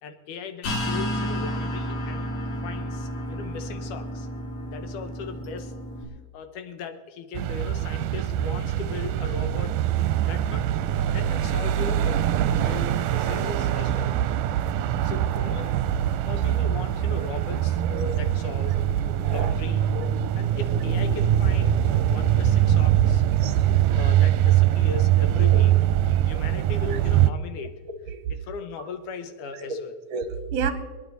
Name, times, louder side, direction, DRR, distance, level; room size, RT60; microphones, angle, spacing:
voice 1, 0.0-2.3 2.6-4.3 4.7-5.7 6.3-9.8 10.3-10.7 11.1-12.2 12.5-14.2 15.0-18.8 19.2-19.9 20.4-23.2 23.9-25.7 26.2-27.7 28.4-30.0, left 5 dB, 75° left, 9 dB, 2.6 m, -37 dB
sound 1, 0.6-6.0, equal, 60° left, 3.2 m, -31 dB
sound 2, 7.3-27.3, right 11 dB, 90° right, 2.2 m, -23 dB
voice 2, 19.2-19.5 20.0-20.1 23.4-23.6 26.9-27.0 28.1-28.2 30.1-30.7, right 6 dB, 70° right, 10 dB, 1.7 m, -29 dB
26.5 x 9.8 x 4.1 m, 1.4 s
omnidirectional pair, 3.7 m